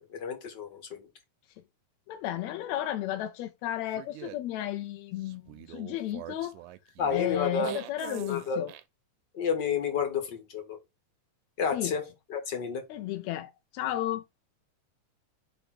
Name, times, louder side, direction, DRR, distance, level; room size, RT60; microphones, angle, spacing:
voice 1, 0.1-1.1 7.0-7.8 8.2-8.7 9.3-10.8 11.6-12.8, left 6 dB, 45° left, 1.8 m, -30 dB
voice 2, 2.1-6.6 7.1-8.7 11.7-11.9 12.9-14.2, left 13 dB, 80° left, 1.7 m, -33 dB
sound 1, 3.9-4.4 5.2-8.8, right 15 dB, 85° right, 2.2 m, -43 dB
5.4 x 4.4 x 6.0 m
omnidirectional pair, 3.5 m